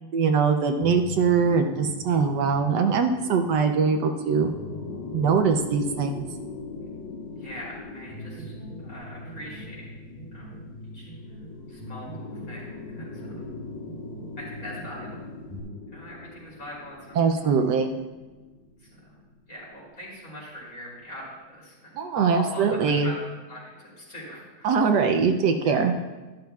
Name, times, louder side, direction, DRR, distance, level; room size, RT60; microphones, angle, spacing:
voice 1, 0.1-4.5 5.1-6.3 17.1-18.0 22.0-23.1 24.6-25.9, right 5 dB, 75° right, 5 dB, 1.2 m, -22 dB
filtered arpeggio edit, 0.8-15.6, left 1 dB, 20° left, 2.5 m, -42 dB
sound 1, 2.8-20.0, left 4 dB, 80° left, 1.7 m, -42 dB
voice 2, 7.3-8.5 8.8-9.9 10.3-10.5 10.9-11.1 11.7-13.4 14.4-15.2 15.9-17.2 18.9-19.0 19.5-21.9 22.3-22.6 22.9-23.2 23.5-24.8 25.6-25.9, left 1 dB, 50° left, -6 dB, 3.6 m, -42 dB
12.0 x 11.5 x 2.3 m, 1.2 s
omnidirectional pair, 2.0 m